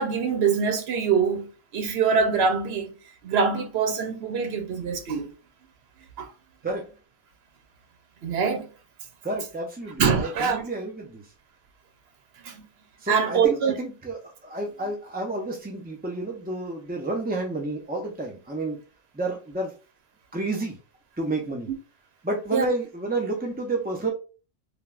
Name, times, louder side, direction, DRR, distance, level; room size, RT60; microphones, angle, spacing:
voice 1, 0.0-2.9 3.2-5.3 6.2-6.3 8.2-8.7 10.0-10.6 12.4-12.6 13.1-13.8 22.5-22.7, right 6 dB, 85° right, 0.9 m, -24 dB
voice 2, 9.2-11.3 13.0-18.8 19.1-19.7 20.3-20.8 21.2-21.7 22.2-24.1, right 2 dB, 15° right, 0.3 m, -30 dB
3.3 x 2.3 x 2.3 m
omnidirectional pair, 1.0 m